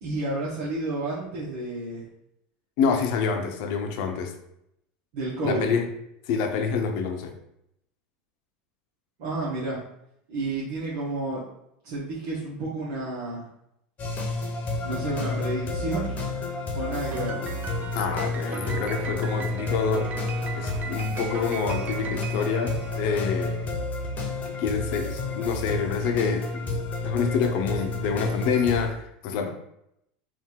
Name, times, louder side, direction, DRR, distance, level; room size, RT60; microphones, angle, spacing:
voice 1, 0.0-2.0 5.1-5.7 9.2-9.8 10.3-11.4 11.8-13.4 14.8-16.2 16.7-17.4, right 2 dB, 70° right, -7 dB, 1.2 m, -30 dB
voice 2, 2.8-4.3 5.4-5.9 6.3-7.3 17.9-20.3 20.5-23.6 24.4-29.5, left 6 dB, 65° left, 4 dB, 0.7 m, -27 dB
sound 1, 14.0-28.9, left 2 dB, 30° left, 1.0 m, -30 dB
Piano, 17.1-23.6, right 7 dB, 30° right, 0.3 m, -38 dB
3.6 x 2.6 x 4.5 m, 0.77 s
supercardioid pair, 115°, 5 cm